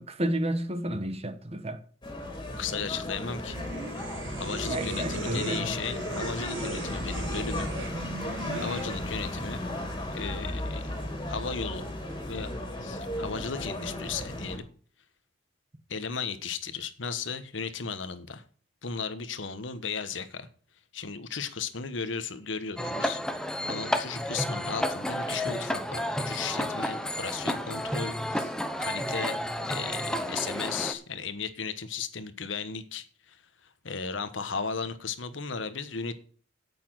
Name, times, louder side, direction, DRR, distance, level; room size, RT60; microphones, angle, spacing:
voice 1, 0.0-1.8 4.7-5.7, right 1 dB, 35° right, 1.3 m, -31 dB
sound 1, 2.0-14.6, left 1 dB, 25° left, 2.8 m, -35 dB
voice 2, 2.6-3.6 4.4-7.7 8.2-9.6 10.1-10.8 11.3-11.9 12.3-12.5 12.8-14.7 15.9-18.4 18.8-20.5 20.9-28.5 28.8-29.4 29.7-33.4 33.6-36.1, left 5 dB, 75° left, 1.1 m, -35 dB
sound 2, 3.5-9.0, right 2 dB, 80° right, 1.9 m, -38 dB
sound 3, 22.8-30.9, equal, 5° left, 0.9 m, -31 dB
8.7 x 8.5 x 6.1 m
head